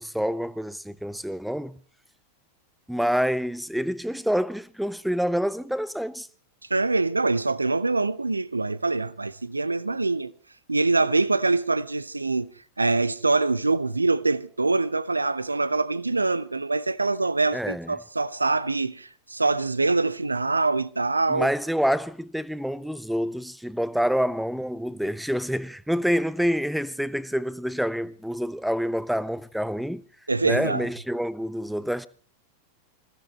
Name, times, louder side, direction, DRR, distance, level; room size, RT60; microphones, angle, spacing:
voice 1, 0.0-1.8 2.9-6.3 17.5-17.9 21.3-30.0 30.4-32.1, equal, ahead, 0.8 m, -27 dB
voice 2, 6.7-10.3 10.7-12.5 12.8-21.5 30.3-30.9, right 3 dB, 80° right, 0.7 m, -24 dB
21.0 x 15.5 x 4.2 m
figure-of-eight pair, 90°, 0 cm